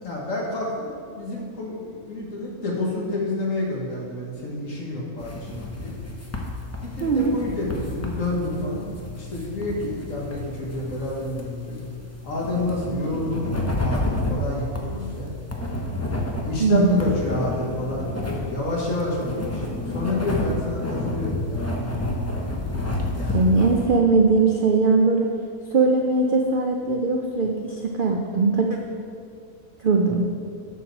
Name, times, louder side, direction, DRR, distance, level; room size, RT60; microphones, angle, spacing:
voice 1, 0.0-6.0 6.8-11.8 12.2-15.3 16.4-22.2 23.2-23.4, left 2 dB, 60° left, -3 dB, 1.9 m, -29 dB
sound 1, 5.2-23.9, left 2 dB, 20° left, 0.5 m, -30 dB
voice 2, 7.0-7.4 16.6-17.1 23.3-25.3 25.7-28.8 29.8-30.2, right 3 dB, 75° right, 2 dB, 0.4 m, -20 dB
8.0 x 4.6 x 6.4 m, 2.3 s
omnidirectional pair, 1.6 m